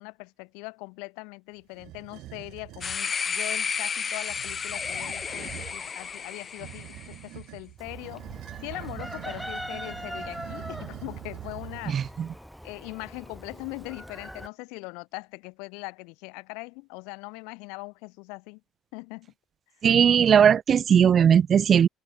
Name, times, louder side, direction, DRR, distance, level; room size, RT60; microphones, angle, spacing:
voice 1, 0.0-8.3 8.6-12.1 12.6-18.6 18.9-19.3, left 31 dB, 90° left, 7.0 m, -41 dB
sound 1, 1.7-3.0 4.2-5.8 6.6-12.1, right 17 dB, 70° right, 0.9 m, -43 dB
sound 2, 2.8-7.2, left 6 dB, 30° left, 0.7 m, -32 dB
Chicken rooster, 7.8-14.5, equal, ahead, 1.2 m, -41 dB
voice 2, 11.9-12.3 19.8-21.9, right 8 dB, 40° right, 0.4 m, -19 dB
cardioid pair, 120°, 0 cm